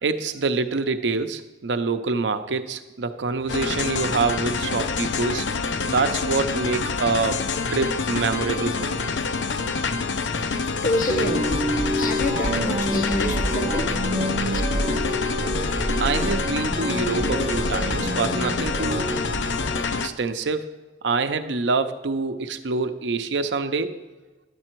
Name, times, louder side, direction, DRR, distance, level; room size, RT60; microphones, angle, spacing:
voice 1, 0.0-5.5 5.9-7.5 7.7-9.1 15.7-19.1 20.0-20.7 21.0-24.0, right 4 dB, 80° right, 0.6 m, -26 dB
sound 1, 3.5-20.1, left 4 dB, 85° left, 0.6 m, -27 dB
voice 2, 10.8-14.6, left 2 dB, 45° left, 0.8 m, -28 dB
sound 2, 11.1-19.8, right 1 dB, 25° right, 0.6 m, -27 dB
10.5 x 7.5 x 4.5 m
head